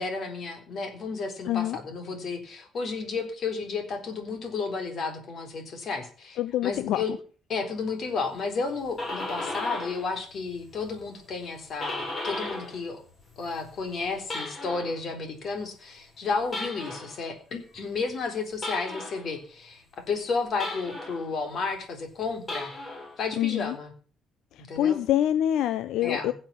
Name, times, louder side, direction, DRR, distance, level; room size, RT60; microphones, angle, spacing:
voice 1, 0.0-7.1 7.5-13.0 13.4-22.7 23.2-23.9 24.6-25.0 26.0-26.3, left 4 dB, 40° left, 3.8 m, -32 dB
voice 2, 1.5-1.8 6.4-7.2 23.4-23.8 24.5-26.3, left 11 dB, 70° left, 0.7 m, -26 dB
sound 1, 8.7-10.1 10.4-12.8 13.1-15.0 16.4-17.2 18.6-19.3 20.6-21.3 22.4-23.1, left 2 dB, 25° left, 7.0 m, -35 dB
16.0 x 7.6 x 7.3 m
cardioid pair, 165°, 0 cm